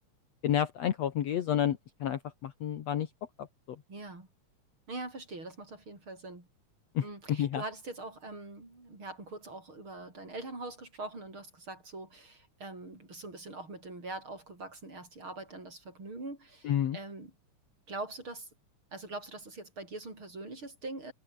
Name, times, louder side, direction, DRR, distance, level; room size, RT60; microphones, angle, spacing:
voice 1, 0.4-3.1 3.4-3.8 6.9-7.6 16.6-17.0, left 10 dB, 60° left, 2.4 m, -30 dB
voice 2, 3.9-4.3 4.9-6.5 7.0-17.3 17.9-18.5 18.9-21.1, right 2 dB, 40° right, 7.7 m, -43 dB
omnidirectional pair, 3.6 m